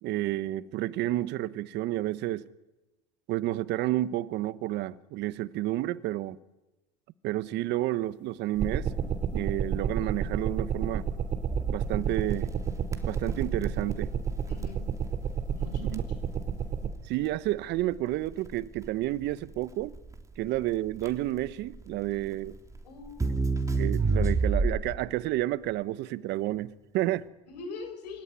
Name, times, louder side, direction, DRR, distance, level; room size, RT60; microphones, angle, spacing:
voice 1, 0.0-2.5 3.3-6.4 7.2-11.0 11.7-12.5 13.0-14.1 15.8-16.0 16.8-19.9 20.4-22.6 23.8-27.3, right 15 dB, 55° right, 1.2 m, -30 dB
sound 1, 8.6-16.9, right 7 dB, 35° right, 2.8 m, -31 dB
Crackle, 11.5-25.1, right 3 dB, 15° right, 3.1 m, -31 dB
voice 2, 14.5-14.9 15.5-16.1 22.8-23.7 27.5-28.2, left 4 dB, 85° left, 6.9 m, -43 dB
26.0 x 17.0 x 9.9 m
hypercardioid pair, 95°, 21 cm